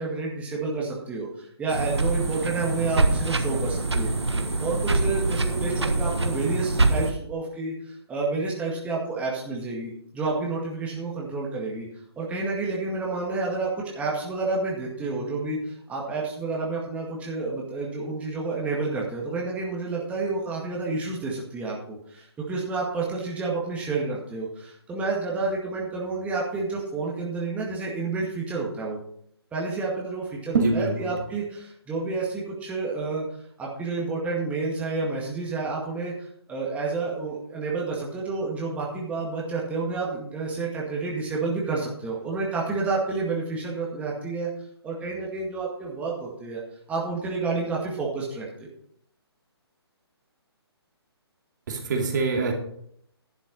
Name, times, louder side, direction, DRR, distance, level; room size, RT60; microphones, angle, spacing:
voice 1, 0.0-4.1 4.6-11.9 12.2-29.0 29.5-33.2 33.6-44.5 44.8-46.6 46.9-48.7, right 3 dB, 10° right, -4 dB, 2.0 m, -30 dB
sound 1, 1.7-7.1, right 2 dB, 80° right, 1.2 m, -24 dB
voice 2, 30.5-31.1 51.7-52.5, right 3 dB, 45° right, 2 dB, 2.4 m, -24 dB
11.0 x 7.3 x 5.3 m, 0.68 s
figure-of-eight pair, 135°, 14 cm